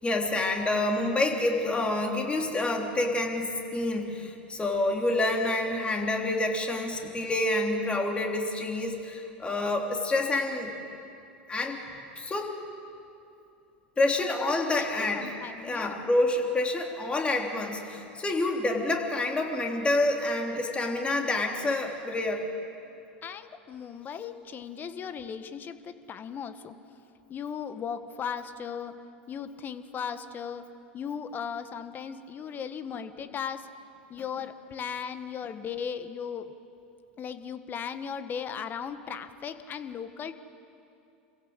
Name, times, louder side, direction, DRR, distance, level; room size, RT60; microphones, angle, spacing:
voice 1, 0.0-10.7 11.5-11.8 12.2-12.6 14.0-15.3 15.6-22.4, left 2 dB, 20° left, 2 dB, 3.5 m, -28 dB
voice 2, 14.2-14.9 15.1-16.1 23.2-26.7 27.3-28.9 29.3-30.6 30.9-33.7 34.1-36.5 37.2-40.3, left 7 dB, 35° left, 10 dB, 1.5 m, -37 dB
27.5 x 16.0 x 8.2 m, 2.7 s
hypercardioid pair, 90°, 6 cm